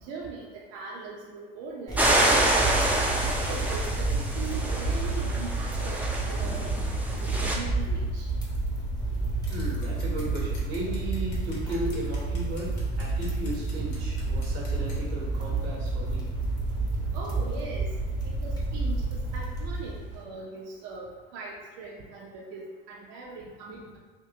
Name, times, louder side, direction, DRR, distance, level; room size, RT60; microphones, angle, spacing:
voice 1, 0.1-2.6 3.2-6.7 7.1-8.3 12.4-12.6 17.1-17.9 18.2-19.0 19.3-24.0, right 4 dB, 55° right, -4 dB, 0.7 m, -40 dB
sound 1, 1.9-20.2, right 2 dB, 10° left, 0.9 m, -30 dB
sound 2, 2.0-7.6, right 1 dB, 5° right, 0.5 m, -27 dB
voice 2, 9.0-17.2, right 1 dB, 85° right, -3 dB, 1.3 m, -36 dB
Scissors, 9.5-15.0, left 2 dB, 65° left, 1.3 m, -50 dB
3.6 x 2.8 x 2.8 m, 1.4 s
hypercardioid pair, 80°, 31 cm